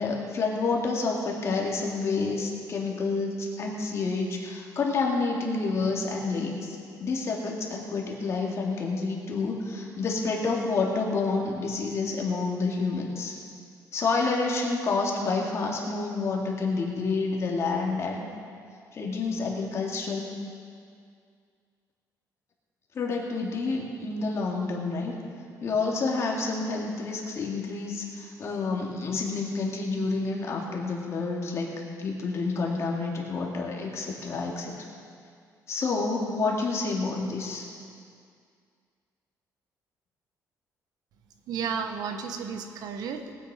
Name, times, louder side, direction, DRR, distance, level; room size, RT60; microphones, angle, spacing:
voice 1, 0.0-13.3 13.9-18.3 18.9-20.3 22.9-25.1 25.6-31.7 32.0-34.7 35.7-37.7, left 3 dB, 45° left, -2 dB, 2.6 m, -29 dB
voice 2, 41.5-43.3, right 6 dB, 75° right, 6 dB, 1.2 m, -33 dB
19.5 x 9.6 x 5.0 m, 2.2 s
cardioid pair, 135°, 7 cm